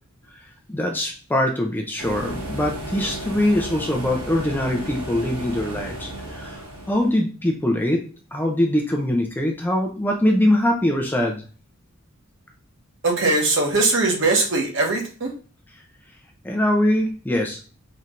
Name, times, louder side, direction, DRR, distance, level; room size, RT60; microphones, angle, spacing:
voice 1, 0.3-8.0 8.3-11.4 16.4-17.6, left 1 dB, 10° left, 2 dB, 0.5 m, -23 dB
sound 1, 2.0-7.2, right 1 dB, 85° right, 1.1 m, -34 dB
voice 2, 13.0-15.3, right 3 dB, 60° right, 0 dB, 1.2 m, -20 dB
4.2 x 3.3 x 2.5 m, 0.36 s
head